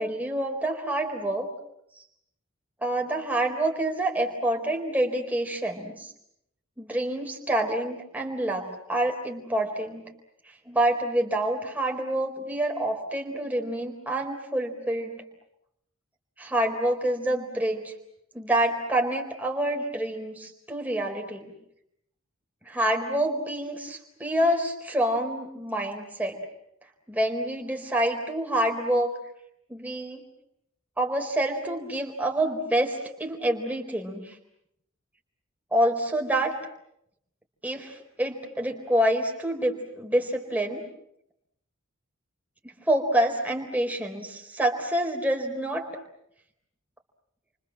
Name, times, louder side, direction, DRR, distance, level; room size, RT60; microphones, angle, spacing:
voice 1, 0.0-1.5 2.0-2.1 2.8-6.1 6.8-10.0 10.5-15.2 16.4-17.9 18.3-21.5 22.7-26.4 27.1-29.1 29.7-30.2 31.0-34.4 35.7-36.5 37.6-40.8 42.6-45.9, right 1 dB, 10° right, 2 dB, 4.2 m, -27 dB
30.0 x 25.0 x 7.6 m, 0.77 s
head